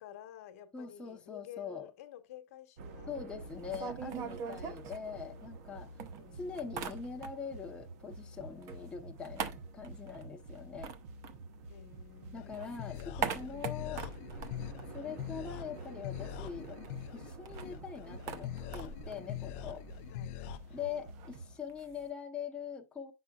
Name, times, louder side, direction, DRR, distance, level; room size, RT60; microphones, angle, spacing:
voice 1, 0.0-3.6 4.0-4.8 6.2-7.2 11.7-12.9 20.1-20.4 20.7-21.0, left 11 dB, 65° left, 1.1 m, -53 dB
voice 2, 0.7-1.9 3.1-5.9 6.3-10.9 12.3-14.0 14.9-16.8 17.1-19.8 20.7-23.1, left 6 dB, 10° left, 0.7 m, -43 dB
sound 1, 2.8-21.6, right 2 dB, 55° right, 1.1 m, -49 dB
sound 2, 3.5-5.7 6.0-7.6 7.9-12.1 12.4-15.7 15.9-16.0 16.3-22.1, right 6 dB, 35° right, 0.7 m, -43 dB
sound 3, 12.4-20.6, left 13 dB, 50° left, 0.4 m, -43 dB
8.0 x 5.8 x 2.3 m
supercardioid pair, 150°, 9 cm